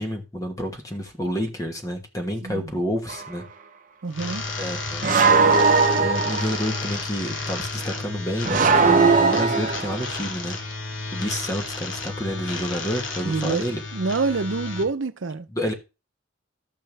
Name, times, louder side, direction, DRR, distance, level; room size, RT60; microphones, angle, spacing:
voice 1, 0.0-3.4 4.6-5.1 6.0-10.6 11.1-13.8 15.5-15.7, equal, 15° left, 1.3 m, -29 dB
voice 2, 2.4-2.7 4.0-4.4 13.2-15.5, right 3 dB, 75° right, 0.7 m, -27 dB
sound 1, 3.1-3.3 5.0-6.7 8.5-10.2, right 4 dB, 40° right, 0.8 m, -19 dB
sound 2, 4.1-14.8, left 3 dB, 75° left, 2.3 m, -32 dB
12.5 x 7.6 x 3.4 m
head